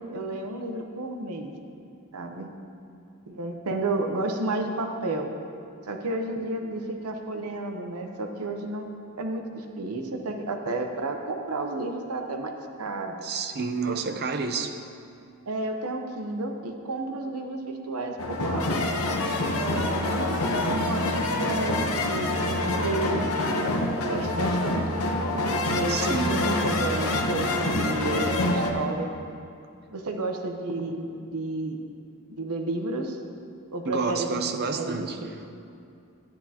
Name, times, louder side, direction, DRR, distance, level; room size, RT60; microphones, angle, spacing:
voice 1, 0.0-1.5 2.1-2.5 3.3-5.3 5.9-8.9 9.2-12.5 12.8-13.1 13.8-14.0 14.5-14.6 15.5-18.7 19.5-23.3 24.1-24.8 25.7-29.1 29.9-31.8 32.4-33.2 33.7-34.3 34.7-35.3, right 2 dB, 75° right, 4 dB, 0.9 m, -31 dB
voice 2, 13.2-14.7 25.9-26.5 33.9-35.2, right 5 dB, 45° right, 7 dB, 0.6 m, -29 dB
sound 1, 18.2-28.7, left 2 dB, 70° left, 0.9 m, -26 dB
13.0 x 10.5 x 2.9 m, 2.6 s
head